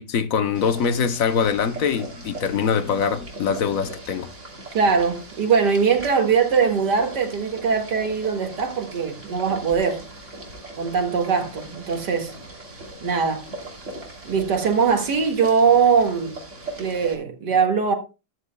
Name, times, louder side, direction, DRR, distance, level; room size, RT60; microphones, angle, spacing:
voice 1, 0.0-4.3, left 6 dB, 60° left, 1.2 m, -23 dB
Boiling, 0.5-17.1, right 2 dB, 45° right, 3.2 m, -40 dB
voice 2, 4.7-10.0 10.8-12.3 13.0-13.4 14.3-16.4 16.8-17.9, right 6 dB, 85° right, 2.5 m, -21 dB
13.5 x 12.5 x 2.2 m
omnidirectional pair, 1.8 m